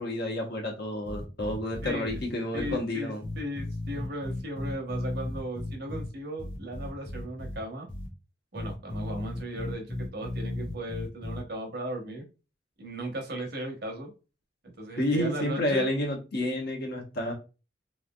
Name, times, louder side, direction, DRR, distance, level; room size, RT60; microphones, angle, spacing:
voice 1, 0.0-3.2 15.0-17.3, left 1 dB, 60° left, 0.9 m, -30 dB
sound 1, 1.0-2.2 2.5-2.7 3.2-6.1 6.4-7.6 7.9-8.1 8.5-11.4, left 1 dB, 5° left, 0.8 m, -35 dB
voice 2, 1.8-2.2 2.5-7.9 8.5-12.2 12.8-14.1 14.6-16.0, right 1 dB, 60° right, 1.0 m, -36 dB
3.2 x 2.5 x 2.2 m
head